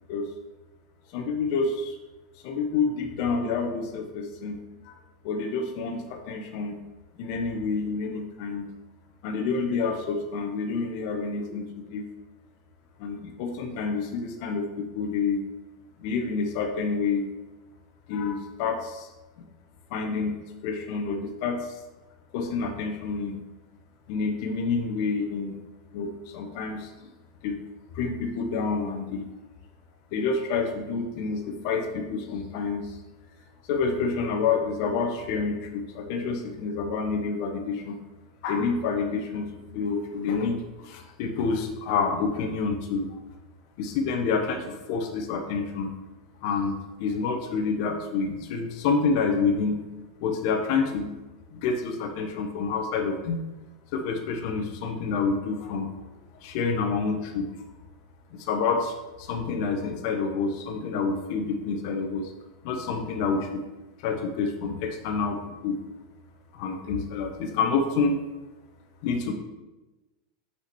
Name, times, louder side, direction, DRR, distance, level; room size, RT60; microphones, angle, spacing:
voice 1, 1.1-2.0 2.4-4.6 4.9-5.0 5.2-6.8 7.2-8.7 9.2-12.1 13.0-15.4 16.0-17.3 18.1-19.1 19.9-20.4 20.6-21.7 22.3-23.4 24.1-25.6 25.9-26.9 27.4-27.6 27.9-29.3 30.1-33.0 33.7-38.0 38.4-39.5 39.7-43.1 43.8-45.9 46.4-49.8 50.2-51.1 51.5-53.4 53.9-55.9 56.4-57.5 58.3-62.3 62.6-63.6 64.0-65.8 66.5-68.2 69.0-69.3, left 4 dB, 55° left, 4 dB, 1.1 m, -28 dB
5.8 x 4.9 x 6.1 m, 1.1 s
supercardioid pair, 125°, 2 cm